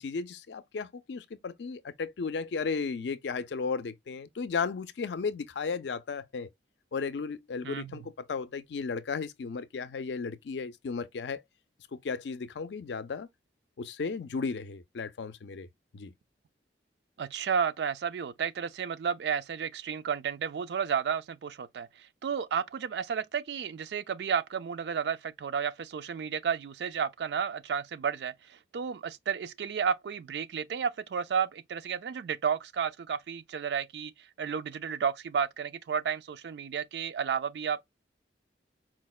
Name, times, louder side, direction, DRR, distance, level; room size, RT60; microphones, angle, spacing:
voice 1, 0.0-6.5 6.9-11.4 11.9-13.3 13.8-15.7 15.9-16.1, left 5 dB, 70° left, 0.4 m, -34 dB
voice 2, 7.6-8.1 17.2-34.1 34.4-37.8, right 7 dB, 65° right, 0.3 m, -32 dB
4.4 x 2.1 x 2.3 m
head